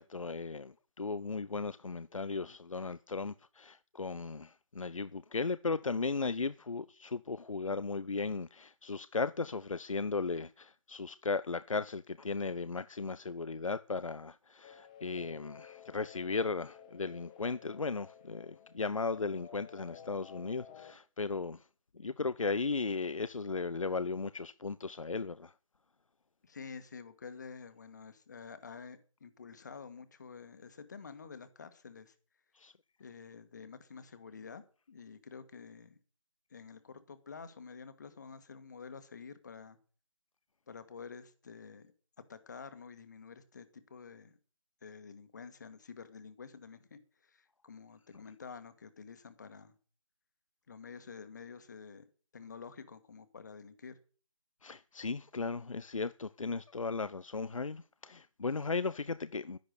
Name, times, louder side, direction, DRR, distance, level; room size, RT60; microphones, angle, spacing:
voice 1, 0.0-21.6 21.9-25.5 32.6-32.7 54.6-59.6, left 4 dB, 70° left, 0.6 m, -36 dB
sound 1, 14.6-20.9, left 8 dB, 10° left, 0.9 m, -54 dB
voice 2, 26.4-32.1 33.0-36.0 36.5-39.8 40.7-41.9 42.3-44.3 44.8-49.7 50.7-52.0 52.3-54.0, left 5 dB, 35° left, 1.6 m, -49 dB
11.5 x 10.5 x 6.5 m
figure-of-eight pair, 160°, 17 cm